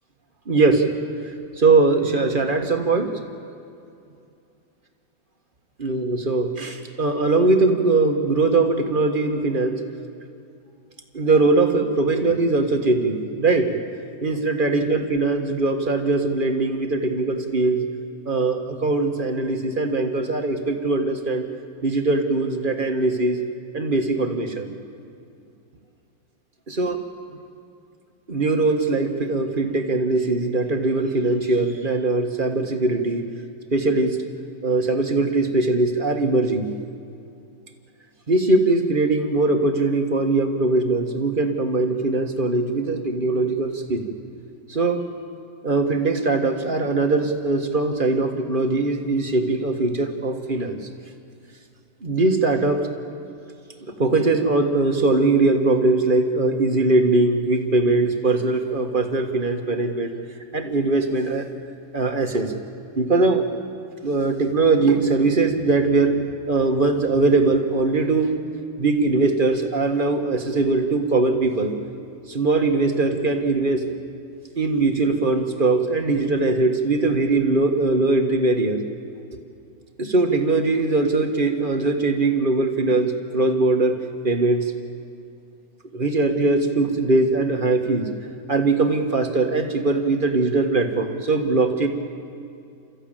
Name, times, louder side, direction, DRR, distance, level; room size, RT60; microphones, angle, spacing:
voice 1, 0.5-0.9 1.6-3.1 5.8-9.8 11.1-13.8 14.2-17.8 18.2-21.5 21.8-23.4 23.7-24.7 26.8-27.0 28.3-33.2 33.7-34.2 34.6-36.7 38.3-44.1 44.7-45.0 45.6-50.8 52.0-52.9 53.9-60.2 60.5-61.4 61.9-62.5 62.9-63.4 64.0-68.3 68.8-71.7 72.3-73.8 74.5-78.8 80.0-84.0 84.2-84.7 85.9-88.1 88.5-91.9, right 3 dB, 25° right, 5 dB, 1.6 m, -21 dB
30.0 x 14.0 x 9.0 m, 2.5 s
omnidirectional pair, 2.3 m